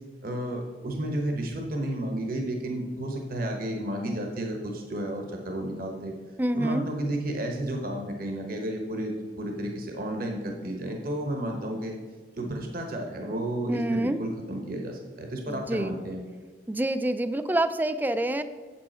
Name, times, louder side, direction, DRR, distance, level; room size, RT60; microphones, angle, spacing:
voice 1, 0.2-6.1 6.5-12.0 12.4-16.2, right 1 dB, 55° right, 2 dB, 1.1 m, -32 dB
voice 2, 6.4-6.9 13.7-14.2 15.5-16.0 16.7-18.4, right 1 dB, 10° right, 11 dB, 0.4 m, -27 dB
8.1 x 7.6 x 4.3 m, 1.5 s
head